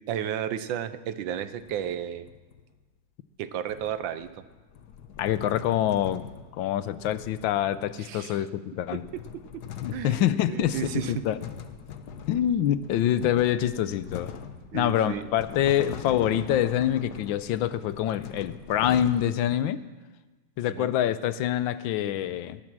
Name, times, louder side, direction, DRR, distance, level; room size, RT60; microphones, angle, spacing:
voice 1, 0.1-2.3 3.4-4.3 8.0-8.4 9.5-9.6 9.9-11.2 12.4-12.5 14.7-15.3 20.7-20.9, right 10 dB, 80° right, 13 dB, 1.5 m, -33 dB
sound 1, 1.4-2.7 3.7-8.3 8.8-19.3, left 8 dB, 60° left, 1.4 m, -42 dB
voice 2, 5.2-6.3 6.5-9.1 9.8-11.4 12.3-14.3 14.7-19.8 20.6-22.6, left 11 dB, 85° left, 14 dB, 1.4 m, -26 dB
21.5 x 11.0 x 6.1 m, 1.3 s
omnidirectional pair, 2.1 m